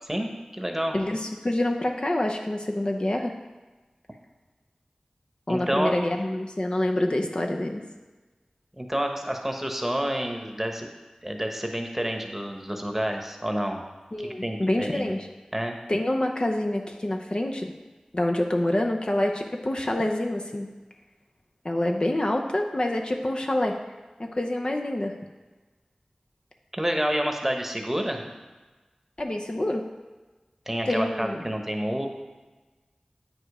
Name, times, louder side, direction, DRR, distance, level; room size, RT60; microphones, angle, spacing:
voice 1, 0.0-1.0 5.5-5.9 8.8-10.9 11.2-13.8 14.2-15.1 15.5-15.8 26.7-28.2 30.7-32.1, equal, 15° right, 3 dB, 1.1 m, -29 dB
voice 2, 0.9-3.3 5.5-7.8 14.1-15.3 15.9-17.7 18.1-20.7 21.6-23.8 24.3-25.1 29.2-29.8 30.9-31.4, left 1 dB, 45° left, 2 dB, 0.7 m, -26 dB
8.8 x 5.1 x 4.9 m, 1.2 s
wide cardioid pair, 45°, 2 cm